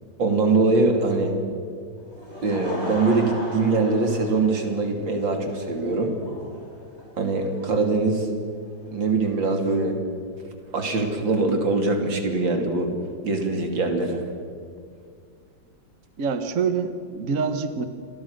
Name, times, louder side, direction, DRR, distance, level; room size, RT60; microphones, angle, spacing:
voice 1, 0.2-1.3 2.4-6.2 7.2-8.3 8.9-10.0 10.7-12.9 13.2-14.2, right 3 dB, 85° right, 4 dB, 3.5 m, -22 dB
Laughter / Crowd, 2.0-8.9, equal, 35° left, 6.4 m, -39 dB
voice 2, 16.2-17.9, right 5 dB, 50° right, 9 dB, 1.5 m, -26 dB
28.5 x 22.5 x 6.6 m, 2.3 s
omnidirectional pair, 2.0 m